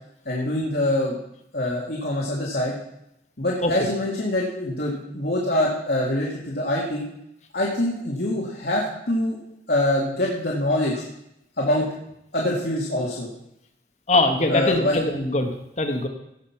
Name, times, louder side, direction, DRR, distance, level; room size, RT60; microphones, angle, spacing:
voice 1, 0.3-1.2 1.5-2.7 3.4-7.0 7.5-9.4 9.7-11.0 11.6-11.9 12.3-13.3 14.5-15.0, left 1 dB, 60° left, -4 dB, 2.2 m, -24 dB
voice 2, 14.1-15.5 15.8-16.1, left 2 dB, 40° left, 5 dB, 1.2 m, -21 dB
17.0 x 6.3 x 5.8 m, 0.81 s
head